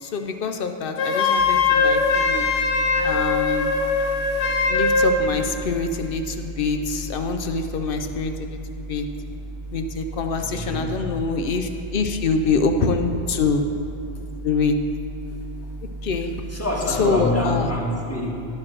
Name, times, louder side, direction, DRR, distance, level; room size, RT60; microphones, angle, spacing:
voice 1, 0.0-2.5 3.0-3.7 4.7-8.6 8.9-9.1 9.7-13.6 14.4-14.7 16.0-16.3 17.0-17.7, left 4 dB, 60° left, 6 dB, 0.7 m, -25 dB
Wind instrument woodwind instrument, 1.0-5.2, left 4 dB, 75° left, 1.1 m, -21 dB
sound 1, 1.4-17.8, right 2 dB, 35° right, 2.5 m, -36 dB
voice 2, 10.3-10.9 16.5-18.4, left 1 dB, 15° left, -3 dB, 1.3 m, -26 dB
10.5 x 4.9 x 6.2 m, 2.7 s
omnidirectional pair, 1.2 m